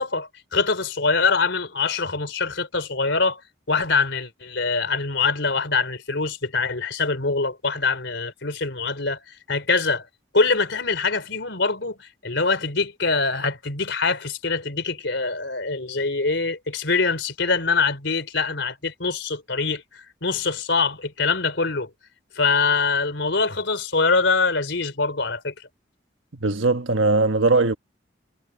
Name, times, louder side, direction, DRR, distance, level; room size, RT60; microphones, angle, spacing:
voice 1, 0.0-3.4 3.7-9.2 9.5-10.1 10.3-21.9 22.4-25.5, left 4 dB, 70° left, 3.6 m, -24 dB
voice 2, 26.4-27.7, right 3 dB, 85° right, 1.5 m, -19 dB
head